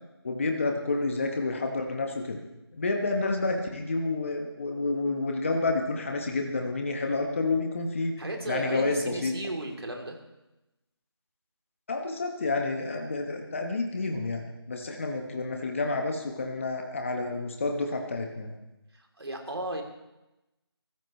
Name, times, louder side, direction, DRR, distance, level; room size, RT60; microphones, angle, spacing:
voice 1, 0.2-2.4 2.7-8.1 8.5-9.3 11.9-18.5, left 3 dB, 30° left, 3 dB, 1.4 m, -29 dB
voice 2, 8.2-10.2 18.9-19.8, right 1 dB, 65° right, 1 dB, 3.4 m, -35 dB
22.0 x 14.5 x 3.3 m, 0.97 s
figure-of-eight pair, 170°, 14 cm